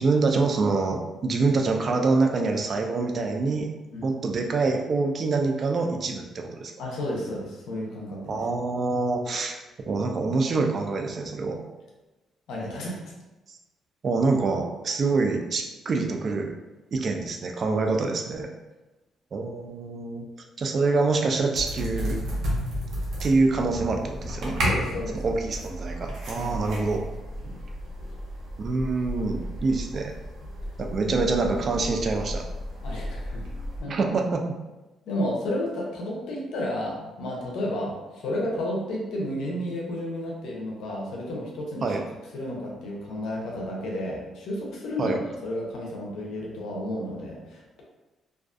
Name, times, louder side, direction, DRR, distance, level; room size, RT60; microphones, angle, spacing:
voice 1, 0.0-3.7 4.0-6.7 8.3-9.6 9.9-11.6 13.5-13.6 14.0-16.5 16.9-18.5 19.3-20.3 20.6-22.2 23.2-24.6 25.1-27.0 28.6-30.1 30.8-32.4 33.9-34.4 41.8-42.0 45.0-45.2, right 3 dB, 50° right, 3 dB, 0.3 m, -25 dB
voice 2, 6.8-8.4 12.5-13.0 24.6-25.2 26.3-26.5 31.0-31.1 32.8-33.5 33.8-34.0 35.1-42.0 42.3-45.1 45.4-47.8, left 1 dB, 85° left, -3 dB, 0.6 m, -32 dB
sound 1, 21.5-33.8, equal, 75° right, 0.8 m, -33 dB
2.4 x 2.4 x 2.4 m, 1.1 s
cardioid pair, 90°, 0 cm